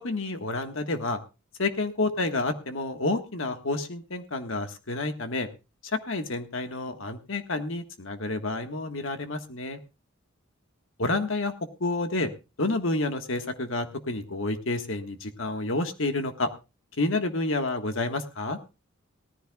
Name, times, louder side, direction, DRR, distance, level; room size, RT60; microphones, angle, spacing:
voice 1, 0.0-1.2 1.6-5.5 5.9-9.8 11.0-11.5 11.8-12.3 12.6-16.5 17.0-18.6, left 2 dB, 65° left, 7 dB, 1.5 m, -29 dB
18.5 x 14.5 x 2.3 m, 0.29 s
head